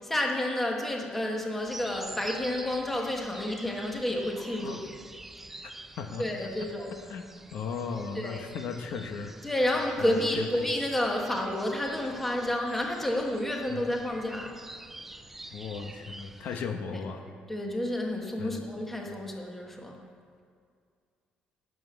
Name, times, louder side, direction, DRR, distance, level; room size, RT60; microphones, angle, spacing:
voice 1, 0.0-4.8 6.2-7.0 8.1-8.4 9.4-14.6 17.5-20.0, left 1 dB, 5° left, 0 dB, 1.4 m, -30 dB
sound 1, 1.7-16.7, right 2 dB, 10° right, 0.4 m, -47 dB
voice 2, 6.0-6.5 7.1-7.2 7.5-9.3 10.0-10.6 13.7-13.8 15.5-17.2 18.4-18.6, left 5 dB, 65° left, 5 dB, 1.1 m, -36 dB
12.0 x 7.6 x 9.4 m, 2.3 s
cardioid pair, 175°, 3 cm